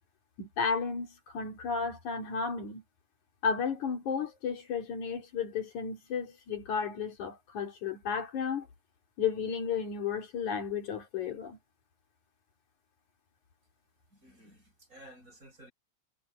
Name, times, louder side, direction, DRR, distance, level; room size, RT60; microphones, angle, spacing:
voice 1, 0.4-2.8 3.4-8.7 9.2-11.6, left 6 dB, 80° left, 4.5 m, -33 dB
voice 2, 14.1-15.7, equal, 25° right, 6.5 m, -54 dB
omnidirectional pair, 3.4 m